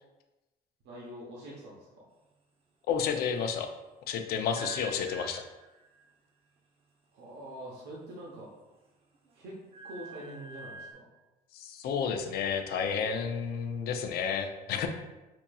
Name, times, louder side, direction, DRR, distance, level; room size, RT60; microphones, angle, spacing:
voice 1, 0.8-1.9 7.1-8.5 9.3-9.5 9.8-11.1, right 1 dB, 90° right, -4 dB, 0.8 m, -44 dB
voice 2, 2.9-3.7 4.1-5.4 11.5-14.9, left 7 dB, 65° left, 5 dB, 0.5 m, -31 dB
sound 1, 4.6-6.1 8.0-8.7 9.1-10.9, right 3 dB, 35° right, 0.7 m, -46 dB
5.0 x 2.8 x 2.3 m, 1.0 s
cardioid pair, 110°, 17 cm